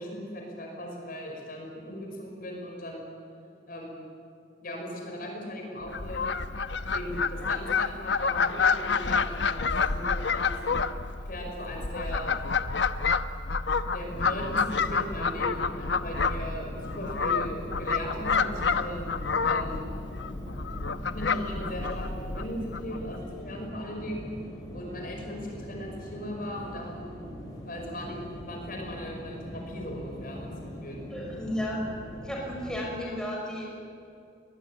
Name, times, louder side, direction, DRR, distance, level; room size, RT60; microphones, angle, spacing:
voice 1, 0.0-3.1 3.7-4.1 4.6-6.3 6.9-10.8 11.3-12.4 13.9-20.0 21.1-24.3 24.7-27.4 27.7-31.0, equal, 50° left, 1 dB, 5.4 m, -38 dB
Fowl, 5.9-23.2, left 5 dB, 80° left, 0.9 m, -29 dB
sound 1, 14.0-32.7, equal, 20° left, 6.3 m, -42 dB
voice 2, 31.1-31.8 32.2-33.7, equal, 5° left, -3 dB, 5.7 m, -33 dB
22.5 x 20.5 x 9.2 m, 2.5 s
head